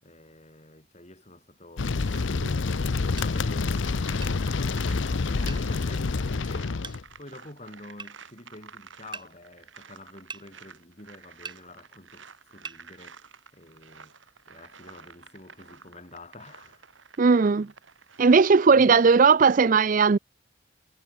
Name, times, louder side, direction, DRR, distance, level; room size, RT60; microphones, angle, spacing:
voice 1, 0.0-2.7 3.1-14.1 14.5-16.9 18.7-19.1, left 1 dB, 30° left, 7.5 m, -48 dB
sound 1, 1.8-7.0, left 4 dB, 60° left, 0.6 m, -27 dB
sound 2, 1.8-19.4, right 6 dB, 60° right, 4.9 m, -51 dB
sound 3, 3.2-3.3 4.2-4.4 5.5-5.7 6.8-7.0 8.0-8.1 9.1-9.3 10.3-10.5 11.4-11.6 12.6-12.8, right 5 dB, 20° right, 6.7 m, -40 dB
voice 2, 17.2-17.7 18.2-20.2, right 5 dB, 40° right, 0.4 m, -18 dB
head